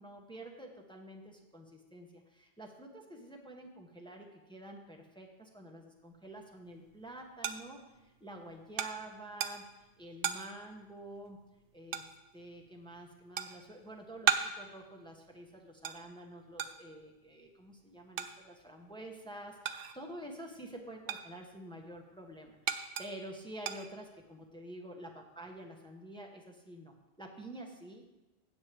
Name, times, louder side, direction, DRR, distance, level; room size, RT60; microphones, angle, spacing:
voice 1, 0.0-11.4 11.7-28.0, right 1 dB, 5° left, 1 dB, 1.0 m, -49 dB
sound 1, 6.4-20.2 20.5-24.5, right 8 dB, 65° right, 0.8 m, -39 dB
16.0 x 7.4 x 3.4 m, 1.0 s
omnidirectional pair, 1.1 m